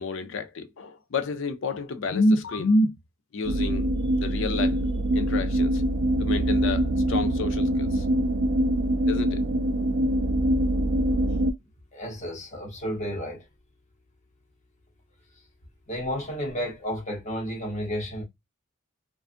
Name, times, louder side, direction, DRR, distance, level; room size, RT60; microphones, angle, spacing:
voice 1, 0.0-2.9 3.3-3.9 4.2-4.8 5.1-5.8 6.2-8.1 9.1-9.5, left 2 dB, 60° left, 0.4 m, -28 dB
sound 1, 3.4-11.5, right 1 dB, 50° right, 0.3 m, -24 dB
voice 2, 11.9-13.4 15.9-18.2, equal, 35° left, 0.9 m, -32 dB
2.5 x 2.3 x 2.5 m
head